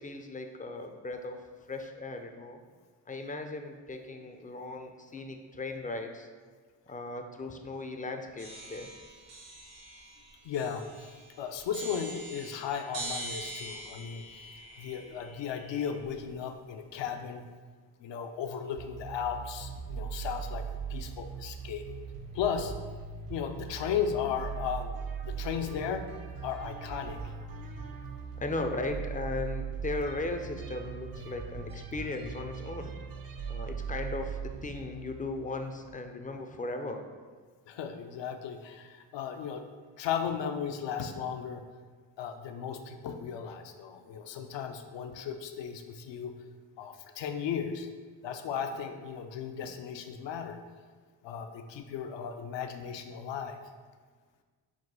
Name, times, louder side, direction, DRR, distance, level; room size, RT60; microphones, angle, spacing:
voice 1, 0.0-1.4 1.7-2.6 3.1-6.3 6.9-8.9 15.0-15.3 28.4-32.9 33.5-37.0, left 2 dB, 20° left, 5 dB, 0.3 m, -37 dB
sound 1, 8.4-16.3, right 2 dB, 75° right, 1.2 m, -44 dB
voice 2, 10.4-14.5 14.8-17.4 18.0-21.8 22.3-22.7 23.3-24.9 25.2-26.0 26.4-27.2 37.7-39.6 40.0-41.6 42.2-46.3 46.8-47.9 48.2-50.6 51.2-53.6, left 7 dB, 70° left, 6 dB, 0.5 m, -35 dB
sound 2, 18.8-36.1, right 6 dB, 50° right, 0.5 m, -40 dB
4.7 x 2.2 x 3.7 m, 1.5 s
supercardioid pair, 55°, 46 cm